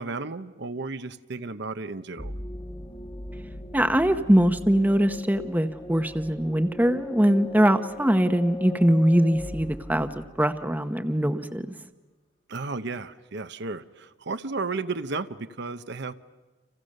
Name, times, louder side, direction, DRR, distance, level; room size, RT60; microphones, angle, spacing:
voice 1, 0.0-2.3 12.5-16.1, right 3 dB, 60° right, 11 dB, 0.9 m, -33 dB
sound 1, 2.2-10.8, left 1 dB, 25° left, 1.6 m, -39 dB
voice 2, 3.7-11.7, equal, 10° right, 9 dB, 0.9 m, -22 dB
30.0 x 27.5 x 6.6 m, 1.2 s
head